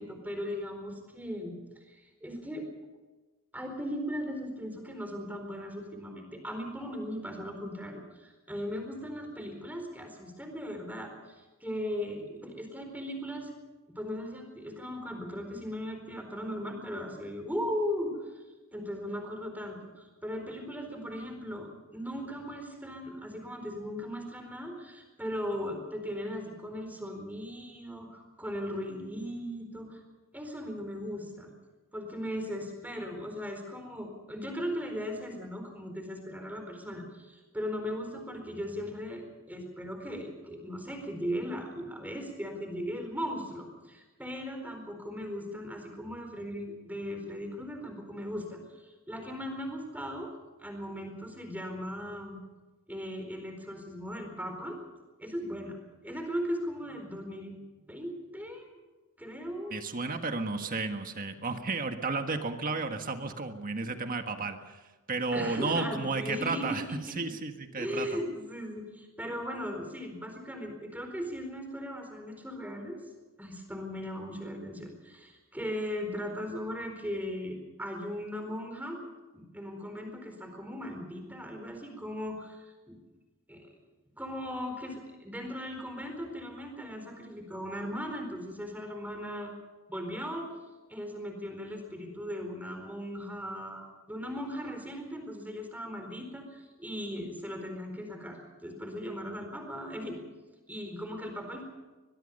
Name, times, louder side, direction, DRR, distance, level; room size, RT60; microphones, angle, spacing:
voice 1, 0.0-1.6 1.9-2.6 3.5-13.5 13.9-18.3 18.7-30.0 30.3-31.5 31.9-50.3 50.6-52.4 52.9-54.8 55.2-55.8 56.0-57.6 57.9-58.8 59.2-59.8 65.3-67.4 67.8-73.0 73.4-79.0 79.3-82.6 82.9-83.0 83.5-83.7 84.2-89.5 89.9-90.5 90.9-100.2 100.7-101.6, equal, 10° right, 4 dB, 4.3 m, -38 dB
voice 2, 59.7-64.8 65.1-66.8 67.2-68.1, right 3 dB, 40° right, 6 dB, 1.6 m, -33 dB
22.5 x 22.0 x 5.4 m, 1.2 s
head